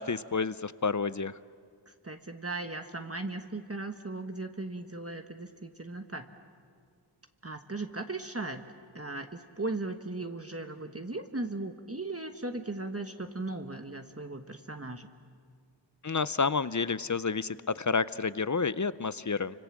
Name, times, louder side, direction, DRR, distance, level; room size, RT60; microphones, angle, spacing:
voice 1, 0.0-1.4 16.0-19.6, left 5 dB, 40° left, 16 dB, 0.6 m, -30 dB
voice 2, 2.0-6.3 7.4-8.6 8.9-15.1, right 2 dB, 30° right, 6 dB, 1.3 m, -37 dB
29.5 x 25.5 x 7.4 m, 2.1 s
wide cardioid pair, 45°, 47 cm